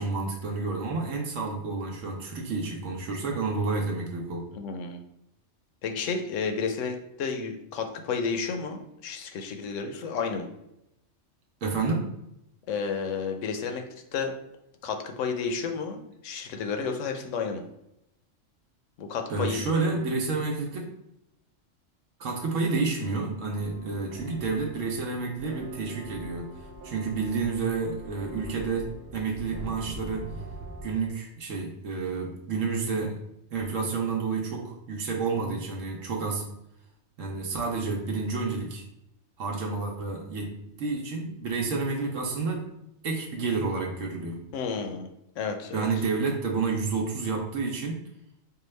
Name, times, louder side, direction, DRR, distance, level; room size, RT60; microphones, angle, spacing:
voice 1, 0.0-4.4 11.6-12.1 19.3-20.9 22.2-26.5 26.8-30.3 30.8-33.2 33.5-36.4 37.2-38.8 39.4-40.5 40.8-42.7 43.0-44.4 45.7-48.0, right 4 dB, 80° right, 0 dB, 1.0 m, -30 dB
voice 2, 4.5-5.0 5.8-10.5 12.7-13.8 14.1-14.3 14.8-17.6 19.0-19.6 44.5-45.1 45.4-45.9, left 5 dB, 80° left, 5 dB, 0.9 m, -31 dB
sound 1, 23.5-30.9, right 1 dB, 60° right, 0.7 m, -43 dB
4.7 x 2.3 x 3.1 m, 0.81 s
omnidirectional pair, 1.3 m